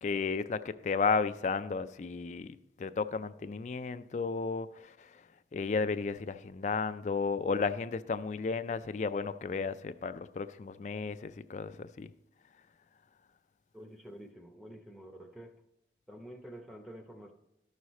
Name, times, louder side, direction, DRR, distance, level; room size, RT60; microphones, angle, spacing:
voice 1, 0.0-4.9 5.5-12.1, left 4 dB, 40° left, 0.3 m, -33 dB
voice 2, 13.7-15.5 16.1-17.3, equal, ahead, 0.7 m, -48 dB
13.0 x 6.3 x 4.1 m
head